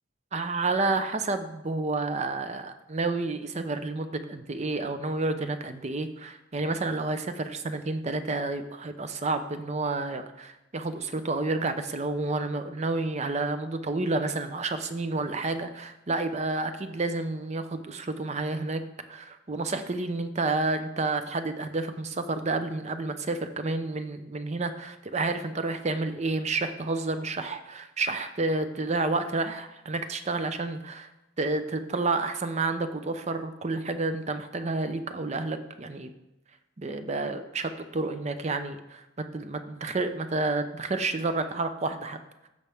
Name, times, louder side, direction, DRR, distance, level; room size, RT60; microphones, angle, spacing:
voice 1, 0.3-18.8 19.1-31.1 31.4-36.1 36.8-39.0 39.3-42.2, right 3 dB, 35° right, 9 dB, 0.6 m, -30 dB
14.5 x 5.6 x 3.4 m, 0.96 s
head